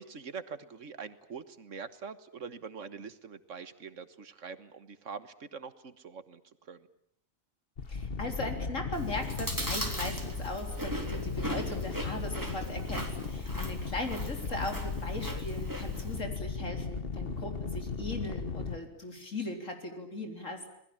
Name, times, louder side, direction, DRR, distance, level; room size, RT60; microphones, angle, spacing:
voice 1, 0.0-6.9, right 5 dB, 70° right, 12 dB, 1.7 m, -44 dB
sound 1, 7.8-18.8, left 5 dB, 45° left, 1.4 m, -36 dB
voice 2, 7.9-20.6, left 1 dB, 70° left, 4 dB, 4.3 m, -38 dB
Chewing mastication, 8.9-16.2, right 1 dB, 15° right, 3.5 m, -39 dB
27.5 x 20.5 x 8.9 m, 0.74 s
omnidirectional pair, 1.4 m